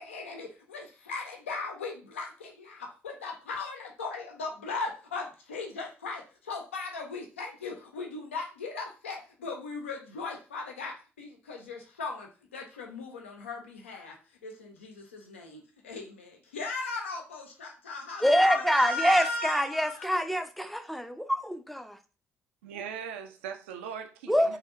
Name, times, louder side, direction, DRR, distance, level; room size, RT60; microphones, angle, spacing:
voice 1, 0.0-14.2 14.4-20.0, left 3 dB, 80° left, 0.5 m, -38 dB
voice 2, 18.2-22.0 24.3-24.6, equal, ahead, 0.4 m, -25 dB
voice 3, 22.6-24.6, right 7 dB, 70° right, 0.4 m, -40 dB
3.3 x 2.7 x 2.3 m
figure-of-eight pair, 45°, 7 cm